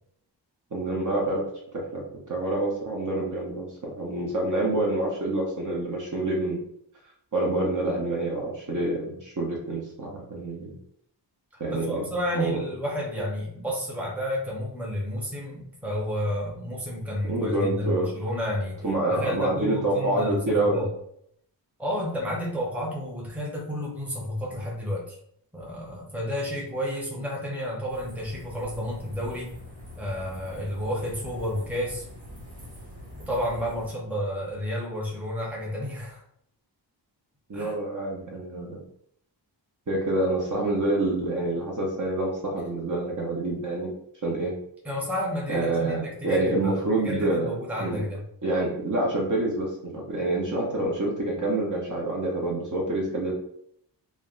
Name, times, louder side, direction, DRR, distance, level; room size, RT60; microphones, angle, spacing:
voice 1, 0.7-1.4 1.7-6.6 7.3-10.7 11.6-12.0 12.3-12.6 17.3-18.1 18.8-20.9 37.5-38.8 39.9-43.9 44.2-44.5 45.5-47.5 47.8-48.0 48.4-53.3, right 2 dB, 45° right, -2 dB, 0.7 m, -27 dB
voice 2, 11.7-18.8 19.1-20.9 21.8-25.1 25.5-29.5 30.0-32.0 33.2-36.2 37.5-37.7 44.8-48.2, equal, 5° right, -4 dB, 0.7 m, -31 dB
sound 1, 27.9-33.9, equal, 65° right, 1.4 m, -43 dB
3.3 x 2.1 x 2.4 m, 0.70 s
wide cardioid pair, 115°, 43 cm